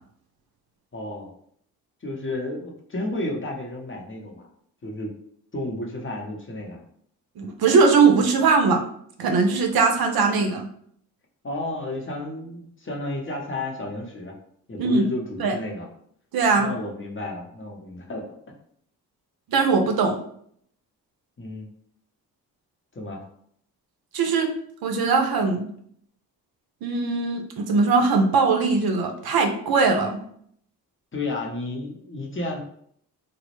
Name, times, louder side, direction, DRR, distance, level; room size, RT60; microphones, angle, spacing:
voice 1, 0.9-1.3 2.0-4.5 4.8-5.1 5.5-6.8 11.4-14.3 14.7-15.9 16.6-18.3 21.4-21.7 22.9-23.2 31.1-32.6, left 2 dB, 30° left, 0 dB, 0.7 m, -32 dB
voice 2, 7.4-8.8 9.2-10.7 14.8-15.0 15.4-15.5 16.3-16.7 19.5-20.2 24.1-24.5 24.8-25.7 26.8-30.2, right 4 dB, 60° right, 4 dB, 0.5 m, -20 dB
2.0 x 2.0 x 3.0 m, 0.65 s
supercardioid pair, 45°, 42 cm